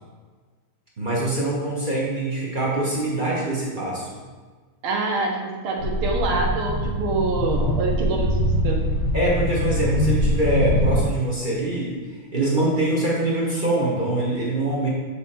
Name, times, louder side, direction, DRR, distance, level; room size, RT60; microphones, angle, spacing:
voice 1, 1.0-4.2 9.1-12.0 12.3-14.9, right 2 dB, 50° right, -5 dB, 0.6 m, -24 dB
voice 2, 4.8-8.9, right 3 dB, 80° right, 0 dB, 1.7 m, -26 dB
sound 1, 5.8-11.0, left 1 dB, 60° left, 0.9 m, -23 dB
7.3 x 3.4 x 4.2 m, 1.4 s
omnidirectional pair, 2.4 m